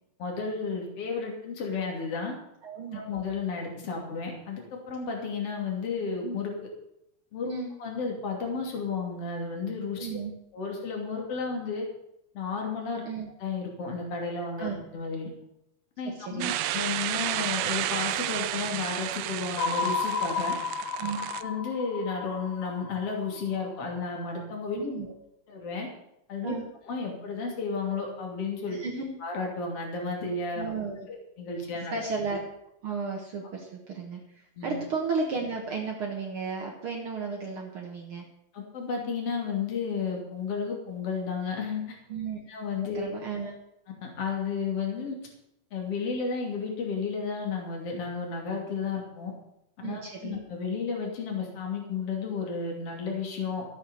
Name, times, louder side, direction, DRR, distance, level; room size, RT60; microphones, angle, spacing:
voice 1, 0.2-2.3 2.9-6.5 7.3-7.5 7.8-10.1 10.5-11.9 12.3-13.1 13.4-15.3 16.0-20.6 21.4-24.8 25.5-25.9 26.3-26.5 26.9-28.8 29.2-30.7 31.1-31.9 34.6-34.7 38.5-42.0 42.5-43.1 44.0-45.1 45.7-49.3 49.8-53.7, left 5 dB, 50° left, 0 dB, 3.6 m, -32 dB
voice 2, 2.6-3.0 7.5-7.7 10.0-10.3 13.1-13.3 14.6-14.8 16.2-16.5 21.0-21.2 24.7-25.1 26.4-26.6 28.7-29.1 30.6-31.1 31.9-32.4 32.8-38.3 42.1-42.4 42.9-43.5 49.8-50.4, right 4 dB, 50° right, 0 dB, 2.1 m, -33 dB
sound 1, 16.4-21.4, right 14 dB, 75° right, 1.6 m, -32 dB
sound 2, 19.6-23.8, left 5 dB, 75° left, 0.9 m, -32 dB
13.5 x 8.3 x 7.0 m, 0.81 s
omnidirectional pair, 3.4 m